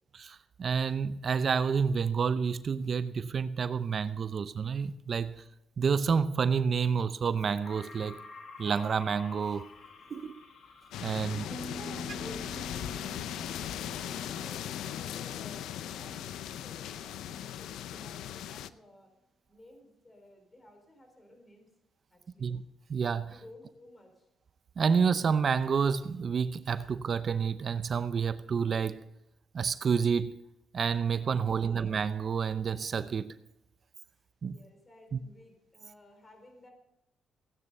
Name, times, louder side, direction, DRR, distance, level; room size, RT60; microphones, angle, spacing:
voice 1, 0.1-5.4 5.8-8.2 8.6-9.7 10.1-10.4 11.0-11.4 22.4-22.6 22.9-23.4 24.8-29.0 29.5-30.4 30.7-33.4 34.4-34.6 35.1-35.2, right 6 dB, 45° right, 0.7 m, -29 dB
sound 1, 7.6-11.8, left 4 dB, 60° left, 2.0 m, -49 dB
sound 2, 10.9-18.7, left 11 dB, 85° left, 0.5 m, -38 dB
voice 2, 11.0-19.1 19.5-21.7 22.1-22.5 23.2-24.3 34.4-36.7, left 1 dB, 20° left, 4.0 m, -53 dB
Piano, 11.5-17.1, right 1 dB, 5° left, 0.9 m, -48 dB
16.5 x 9.5 x 5.4 m
cardioid pair, 90°, 0 cm